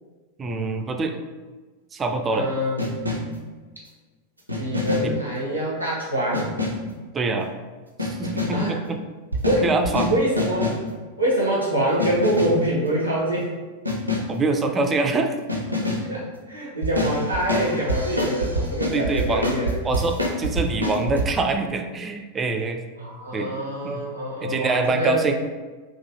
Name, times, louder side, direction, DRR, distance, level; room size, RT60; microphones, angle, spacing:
voice 1, 0.4-1.2 1.9-2.5 5.0-5.2 7.1-7.5 8.0-9.0 9.6-10.2 14.3-15.4 18.9-19.5 19.8-22.8 23.3-23.5 23.8-24.0 24.4-25.3, right 3 dB, 20° right, 6 dB, 0.3 m, -25 dB
voice 2, 2.3-2.8 4.6-6.5 8.5-8.8 9.4-9.7 10.1-10.7 11.2-13.5 15.9-19.7 23.0-25.2, right 1 dB, 90° left, -7 dB, 0.9 m, -25 dB
sound 1, 2.8-3.4 4.5-5.2 6.3-6.9 8.0-8.7 9.3-10.9 12.0-12.7 13.8-14.4 15.5-16.1 16.8-21.3, left 1 dB, 85° right, 0.5 m, -26 dB
3.8 x 2.4 x 2.7 m, 1.3 s
figure-of-eight pair, 90°, 0 cm